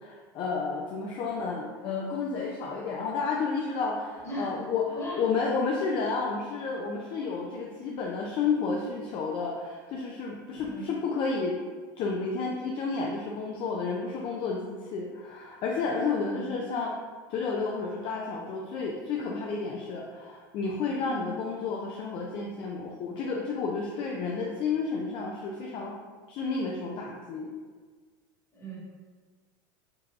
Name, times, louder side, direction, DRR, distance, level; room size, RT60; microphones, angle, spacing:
voice 1, 0.0-11.6 12.0-17.0 17.3-26.0 26.3-27.5, left 4 dB, 45° left, -1 dB, 0.4 m, -31 dB
voice 2, 4.2-4.7 5.0-5.2 10.6-10.9 16.3-16.5 21.1-21.3 28.5-28.8, right 1 dB, 25° left, -5 dB, 1.2 m, -38 dB
3.8 x 2.7 x 2.3 m, 1.5 s
supercardioid pair, 105°, 12 cm